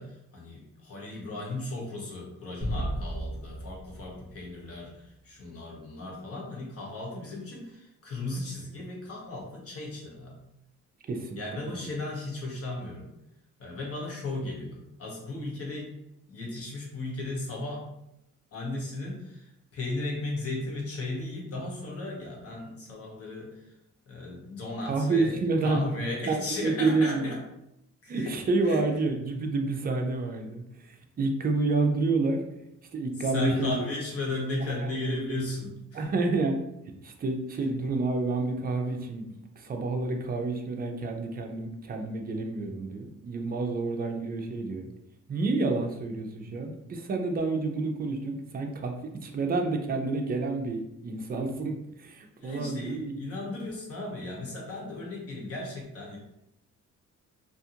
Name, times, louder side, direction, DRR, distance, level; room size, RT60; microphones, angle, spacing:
voice 1, 0.0-10.4 11.4-13.1 13.6-15.9 16.3-17.9 18.5-23.7 24.1-25.3 25.6-27.4 28.0-28.3 28.6-28.8 33.2-36.3 52.4-56.2, left 2 dB, 50° left, -2 dB, 1.0 m, -36 dB
sound 1, 2.6-5.1, right 1 dB, 5° right, 0.9 m, -35 dB
voice 2, 11.1-11.4 24.9-25.8 26.3-27.3 28.1-32.4 32.9-33.8 34.8-34.9 35.2-35.3 35.9-36.6 36.9-44.9 45.3-53.2, right 3 dB, 30° right, 4 dB, 0.4 m, -29 dB
2.5 x 2.4 x 2.7 m, 0.82 s
cardioid pair, 100°, 30 cm